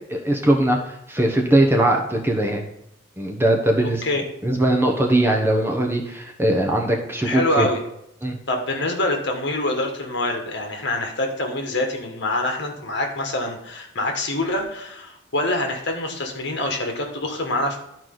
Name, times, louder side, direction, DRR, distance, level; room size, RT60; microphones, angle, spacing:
voice 1, 0.1-0.8 1.1-2.6 3.2-4.0 4.4-7.7 8.2-8.4, right 1 dB, 10° right, 1 dB, 1.0 m, -20 dB
voice 2, 3.8-4.2 7.2-7.8 8.5-17.8, left 1 dB, 60° left, 2 dB, 1.7 m, -25 dB
12.0 x 4.7 x 3.9 m, 0.83 s
head